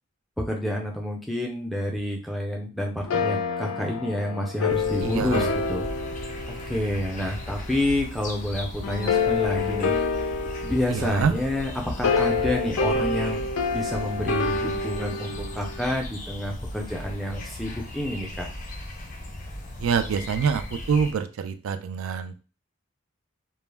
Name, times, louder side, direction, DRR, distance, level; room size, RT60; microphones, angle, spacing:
voice 1, 0.4-5.9 6.5-9.9 10.6-13.4 13.7-18.5, left 1 dB, ahead, -1 dB, 0.4 m, -29 dB
sound 1, 3.1-7.7 8.8-16.0, left 4 dB, 85° left, 0.4 m, -28 dB
sound 2, 4.7-21.1, left 1 dB, 40° left, 0.6 m, -37 dB
voice 2, 5.0-5.5 10.9-11.3 19.8-22.4, right 6 dB, 85° right, 9 dB, 0.3 m, -26 dB
2.2 x 2.0 x 3.2 m, 0.34 s
head